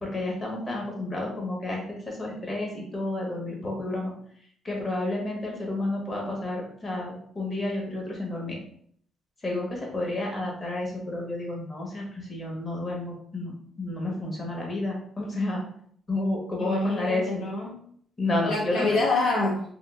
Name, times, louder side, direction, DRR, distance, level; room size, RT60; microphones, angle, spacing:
voice 1, 0.0-4.1 4.6-8.6 9.4-13.5 13.8-15.6 16.1-17.4 18.2-19.0, left 2 dB, 35° left, -1 dB, 1.2 m, -30 dB
voice 2, 16.6-17.8 18.5-19.6, left 2 dB, 70° left, -3 dB, 0.6 m, -26 dB
3.5 x 2.4 x 2.4 m, 0.62 s
cardioid pair, 90°, 0 cm